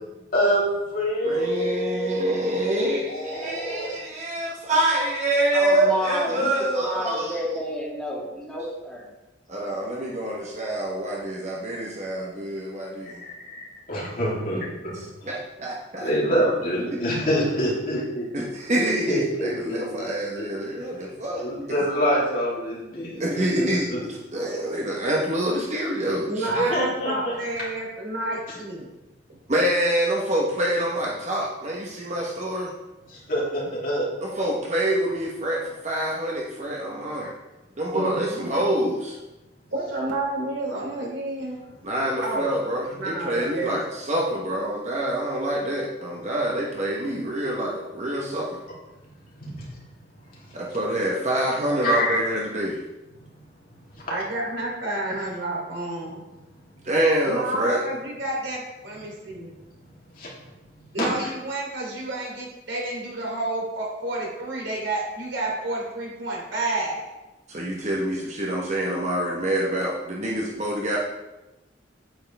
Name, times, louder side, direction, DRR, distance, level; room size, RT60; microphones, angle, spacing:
voice 1, 0.3-0.6 0.9-2.8 3.1-3.9 13.0-15.0 16.0-18.3 19.1-20.5 21.0-21.1 21.4-23.2 23.6-24.0 26.4-27.4 33.1-34.1 37.2-37.3 49.4-49.7 50.4-50.8 51.8-52.2 53.2-53.3 54.0-54.1 60.2-60.5 61.2-61.3, equal, 50° left, -5 dB, 2.9 m, -27 dB
voice 2, 1.2-7.4 9.5-13.2 14.9-16.1 16.9-17.0 18.3-21.5 23.2-26.7 29.5-32.7 34.2-37.3 37.8-39.2 41.8-48.6 50.5-52.8 56.8-57.8 67.5-71.0, right 1 dB, 35° right, -3 dB, 1.1 m, -26 dB
voice 3, 5.5-9.0, left 1 dB, 5° left, -6 dB, 2.3 m, -29 dB
voice 4, 26.3-28.9 37.9-38.5 39.7-41.6 42.2-42.5 43.0-43.8 54.1-56.2 57.2-59.5 60.9-67.1, right 2 dB, 75° right, -3 dB, 3.1 m, -30 dB
8.9 x 8.3 x 3.4 m, 1.0 s
head